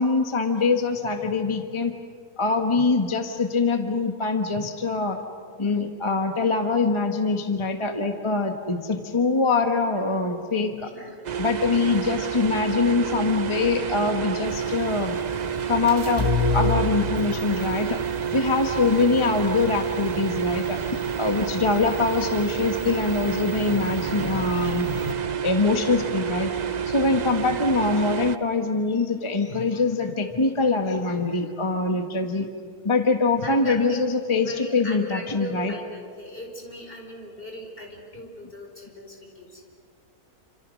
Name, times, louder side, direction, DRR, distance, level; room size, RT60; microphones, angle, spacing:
voice 1, 0.0-1.9 2.4-5.2 5.6-10.9 11.4-15.2 15.7-18.0 18.3-20.8 21.2-24.9 25.4-26.5 26.9-32.5 32.8-35.7, left 3 dB, 20° left, 5 dB, 1.3 m, -23 dB
voice 2, 10.8-11.1 16.2-16.3 33.4-39.6, equal, 35° left, 1 dB, 4.9 m, -38 dB
sound 1, 11.2-28.4, right 8 dB, 45° right, 0.6 m, -29 dB
sound 2, 14.5-25.1, left 2 dB, 15° right, 1.7 m, -32 dB
28.5 x 26.5 x 6.4 m, 2.1 s
omnidirectional pair, 1.6 m